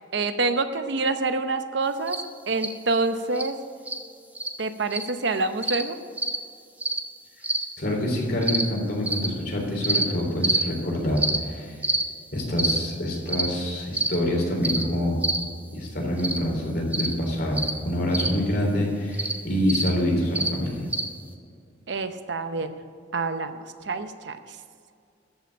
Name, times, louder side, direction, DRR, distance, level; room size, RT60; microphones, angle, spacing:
voice 1, 0.1-2.2 2.5-3.5 4.6-6.0 21.9-22.7 23.1-24.4, right 3 dB, 65° right, 9 dB, 0.8 m, -27 dB
sound 1, 2.1-2.2 2.6-2.7 3.4-3.5 3.9-4.0 4.4-4.5 4.9-5.1 5.6-5.8 6.2-6.4 6.8-7.0 7.4-7.7 8.4-8.6 9.1-9.3 9.8-10.0 10.4-10.6 11.2-11.4 11.8-12.0 12.6-12.8 13.3-13.5 13.9-14.2 14.6-14.8 15.2-15.4 16.2-16.4 16.9-17.1 17.6-17.7 18.1-18.3 19.1-19.3 19.7-19.9 20.4-20.5 20.9-21.1, right 2 dB, 10° right, 0.9 m, -25 dB
voice 2, 7.8-11.8 12.3-15.2 15.7-20.9, left 1 dB, 55° left, -1 dB, 3.6 m, -26 dB
14.0 x 6.0 x 8.7 m, 2.3 s
head